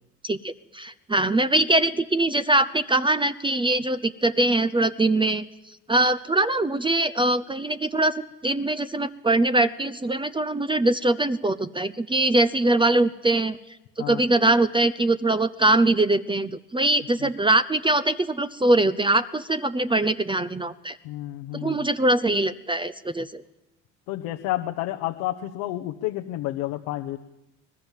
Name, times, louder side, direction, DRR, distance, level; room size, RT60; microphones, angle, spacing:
voice 1, 0.2-5.4 5.9-13.6 14.0-21.0 21.6-23.4, right 2 dB, 15° right, 12 dB, 0.8 m, -22 dB
voice 2, 21.0-21.9 24.1-27.2, left 15 dB, 80° left, 4 dB, 1.2 m, -30 dB
23.5 x 19.0 x 7.5 m, 0.92 s
supercardioid pair, 85°, 35 cm